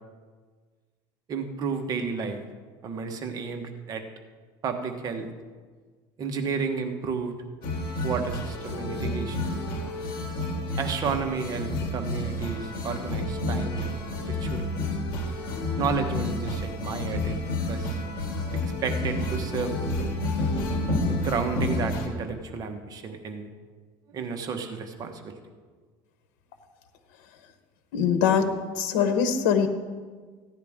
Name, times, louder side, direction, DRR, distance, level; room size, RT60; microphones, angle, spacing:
voice 1, 1.3-2.4 2.8-4.0 4.6-5.3 6.2-7.3 8.0-9.5 10.7-14.7 15.8-17.4 17.7-18.0 18.4-20.1 21.0-23.5 24.1-25.4, right 5 dB, 35° right, 5 dB, 1.1 m, -32 dB
sound 1, 7.6-22.1, left 1 dB, 50° left, 2.2 m, -30 dB
voice 2, 27.9-28.4 28.8-29.7, left 7 dB, 85° left, 8 dB, 1.0 m, -22 dB
15.5 x 10.5 x 3.6 m, 1.5 s
cardioid pair, 135°, 10 cm